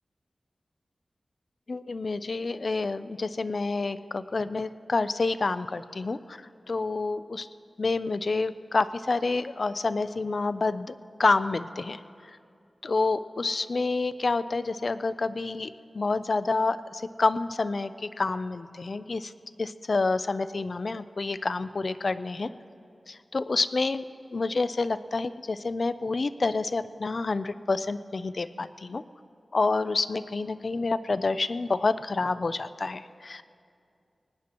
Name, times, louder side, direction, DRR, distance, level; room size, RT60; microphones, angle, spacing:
voice 1, 1.7-7.5 7.8-10.9 11.2-12.0 12.8-19.3 19.6-22.5 23.1-24.0 24.3-29.0 29.5-33.4, left 3 dB, 65° left, 13 dB, 0.5 m, -28 dB
22.5 x 19.0 x 3.0 m, 2.4 s
wide cardioid pair, 65°, 0 cm